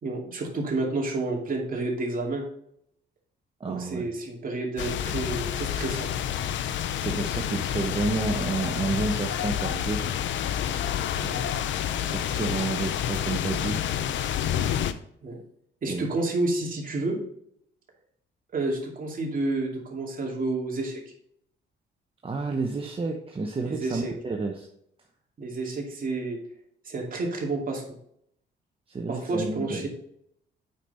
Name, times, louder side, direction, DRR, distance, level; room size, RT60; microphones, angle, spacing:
voice 1, 0.0-2.4 3.7-6.1 11.2-11.4 15.2-15.4 15.8-17.2 18.5-21.0 23.6-24.1 25.4-26.4 26.8-27.8 29.1-29.9, right 2 dB, 45° right, 0 dB, 2.6 m, -30 dB
voice 2, 3.6-4.1 7.0-10.1 12.0-13.8 15.9-16.2 22.2-24.7 28.9-29.9, right 3 dB, 25° right, 1 dB, 1.0 m, -30 dB
sound 1, 4.8-14.9, left 10 dB, 70° left, 0.6 m, -29 dB
8.4 x 5.3 x 4.2 m, 0.72 s
cardioid pair, 90°, 20 cm